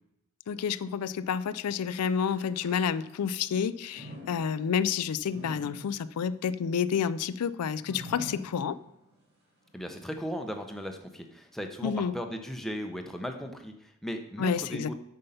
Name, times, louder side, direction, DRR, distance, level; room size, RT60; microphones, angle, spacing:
voice 1, 0.5-8.8 11.8-12.1 14.4-14.9, left 7 dB, 90° left, 16 dB, 0.4 m, -29 dB
sound 1, 1.8-3.4 3.9-9.2 9.7-9.8 10.6-10.7, equal, 45° right, 2.3 m, -47 dB
voice 2, 9.7-14.9, equal, ahead, 4 dB, 0.7 m, -37 dB
8.9 x 5.5 x 5.6 m, 0.81 s
head